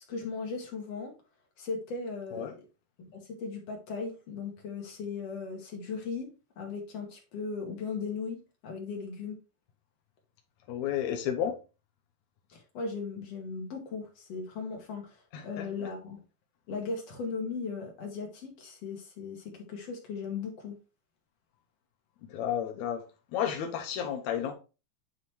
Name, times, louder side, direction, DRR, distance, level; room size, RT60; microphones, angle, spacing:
voice 1, 0.1-1.1 1.6-2.5 3.0-3.1 3.4-6.3 6.6-8.4 8.6-9.4 12.5-15.2 15.4-16.2 16.7-20.7, left 4 dB, 55° left, 2.0 m, -37 dB
voice 2, 10.7-11.6 15.3-15.7 22.3-23.0 23.3-24.5, left 9 dB, 75° left, 1.7 m, -32 dB
9.2 x 3.1 x 4.3 m
omnidirectional pair, 4.2 m